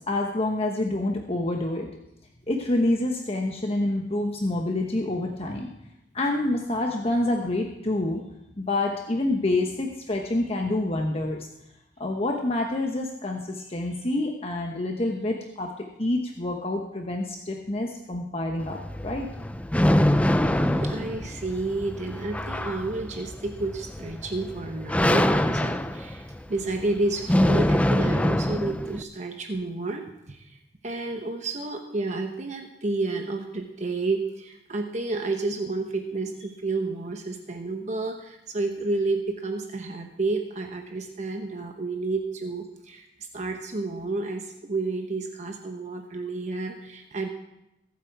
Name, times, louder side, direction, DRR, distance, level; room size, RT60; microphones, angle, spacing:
voice 1, 0.1-1.9 2.5-5.7 6.1-8.2 8.6-11.5 12.0-19.3, left 2 dB, 35° left, 2 dB, 1.1 m, -27 dB
sound 1, 18.6-29.0, left 1 dB, 10° left, 0.5 m, -24 dB
voice 2, 20.4-30.6 30.8-43.1 43.3-47.3, right 3 dB, 40° right, 4 dB, 1.0 m, -30 dB
22.5 x 8.1 x 4.7 m, 0.87 s
head